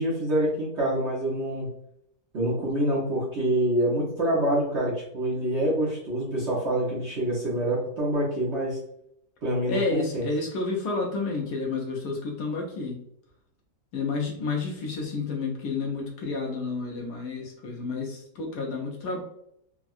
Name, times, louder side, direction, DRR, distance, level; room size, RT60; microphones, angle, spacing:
voice 1, 0.0-1.7 2.3-8.8 9.4-10.2, right 1 dB, 50° right, -6 dB, 0.9 m, -26 dB
voice 2, 9.7-13.0 13.9-19.2, left 3 dB, 70° left, -1 dB, 1.2 m, -30 dB
3.6 x 2.1 x 2.4 m, 0.72 s
omnidirectional pair, 1.9 m